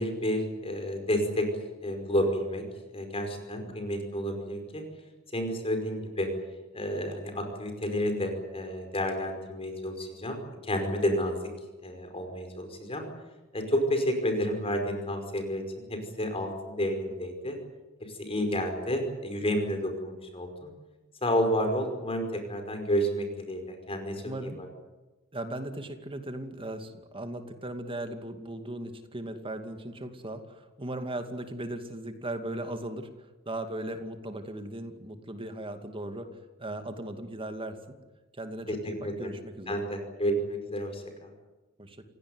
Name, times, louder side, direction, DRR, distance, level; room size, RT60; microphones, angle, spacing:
voice 1, 0.0-1.5 1.8-2.6 2.9-4.8 5.3-6.3 6.7-11.4 11.8-13.1 13.5-17.6 18.0-20.7 21.2-24.7 38.7-39.3 39.7-41.3, equal, 25° left, 5 dB, 5.2 m, -30 dB
voice 2, 24.2-24.6 25.3-33.1 33.5-36.3 36.6-37.8 38.4-39.8 41.8-42.0, right 1 dB, 25° right, 7 dB, 2.4 m, -37 dB
28.5 x 17.5 x 9.7 m, 1.1 s
head